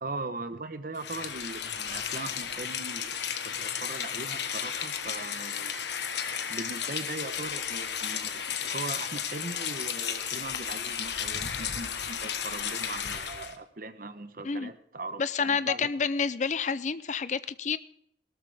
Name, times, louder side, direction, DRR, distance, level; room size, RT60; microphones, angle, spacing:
voice 1, 0.0-3.2 3.4-5.8 6.5-15.9, right 2 dB, 50° right, 10 dB, 1.0 m, -39 dB
Rain, 1.0-13.6, left 8 dB, 75° left, 1.1 m, -34 dB
voice 2, 15.2-17.8, left 5 dB, 40° left, 16 dB, 0.5 m, -29 dB
17.5 x 13.0 x 3.5 m, 0.72 s
head